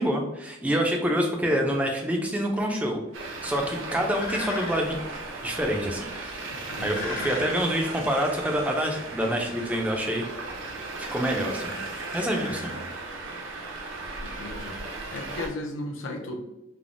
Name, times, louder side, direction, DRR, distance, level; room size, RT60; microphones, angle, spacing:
voice 1, 0.0-3.0 3.4-5.0 5.4-10.2 11.0-11.7 12.1-12.7, equal, 5° right, 1 dB, 0.3 m, -27 dB
sound 1, 3.1-13.4, left 2 dB, 55° left, 0.7 m, -42 dB
Traffic noise roadway noise, 3.1-15.5, right 3 dB, 75° right, 0.5 m, -36 dB
voice 2, 6.5-7.3 12.4-12.9 14.2-14.8 15.1-16.4, left 1 dB, 90° left, 2 dB, 0.5 m, -36 dB
3.2 x 2.0 x 2.5 m, 0.90 s
head